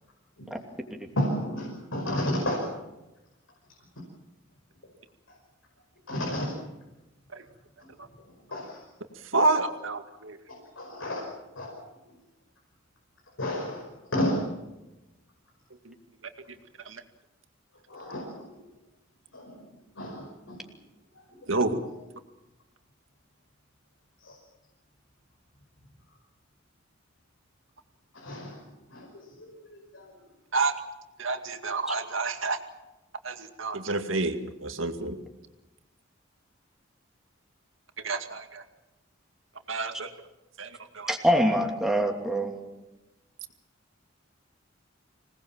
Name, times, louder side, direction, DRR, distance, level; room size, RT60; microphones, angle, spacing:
voice 1, 1.1-2.7 5.3-5.4 6.1-6.6 8.5-8.8 10.5-11.9 13.4-14.7 17.9-18.6 19.3-19.7 20.0-20.8 21.1-21.5 24.2-24.4 28.1-30.2, equal, 90° left, -1 dB, 5.6 m, -33 dB
voice 2, 9.3-10.4 15.9-16.0 16.9-17.0 21.5-21.8 30.5-30.7 31.2-32.6 33.2-35.2 38.0-38.6 39.7-40.1 40.6-40.7 40.9-41.1, right 3 dB, 85° right, 7 dB, 2.2 m, -28 dB
voice 3, 41.1-42.5, equal, 5° right, 2 dB, 2.9 m, -24 dB
26.0 x 19.5 x 7.4 m, 0.99 s
head